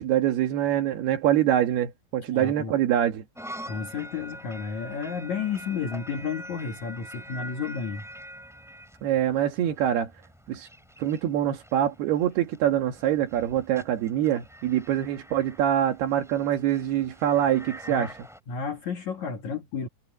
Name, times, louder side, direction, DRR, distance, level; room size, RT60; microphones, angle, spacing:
voice 1, 0.0-3.2 9.0-10.1 10.5-10.7 11.0-18.1, right 11 dB, 80° right, 3.8 m, -24 dB
voice 2, 2.3-2.7 3.7-8.1 17.9-18.1 18.5-19.9, left 6 dB, 55° left, 3.0 m, -32 dB
sound 1, 3.4-18.4, equal, ahead, 5.2 m, -45 dB
omnidirectional pair, 4.5 m